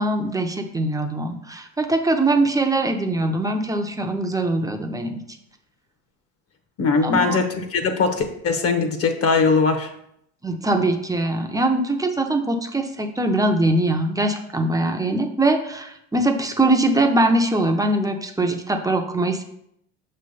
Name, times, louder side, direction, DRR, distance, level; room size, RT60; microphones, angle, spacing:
voice 1, 0.0-5.2 7.0-7.4 10.4-19.4, right 2 dB, 10° right, 4 dB, 0.6 m, -22 dB
voice 2, 6.8-9.9, left 4 dB, 40° left, 7 dB, 1.0 m, -20 dB
6.1 x 3.3 x 5.3 m, 0.74 s
supercardioid pair, 110°, 36 cm